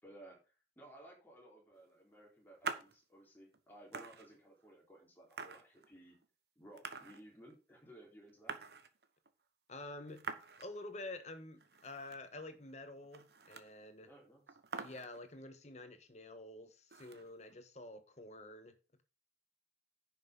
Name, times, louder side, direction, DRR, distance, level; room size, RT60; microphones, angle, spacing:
voice 1, 0.0-6.2 6.6-8.6 14.1-14.4, right 1 dB, 10° left, 4.1 m, -58 dB
sound 1, 2.6-3.0 3.5-3.6 3.9-4.7 5.3-6.3 6.7-7.5 7.8-7.9 8.1-9.3 10.1-10.8 11.2-11.3 11.6-12.4 12.7-12.8 13.0-13.8 14.1-14.2 14.5-15.4 16.9-17.5, right 4 dB, 65° right, 1.1 m, -46 dB
voice 2, 9.7-10.3 10.6-14.1 14.7-19.0, left 2 dB, 40° left, 1.4 m, -49 dB
10.5 x 6.0 x 5.3 m
head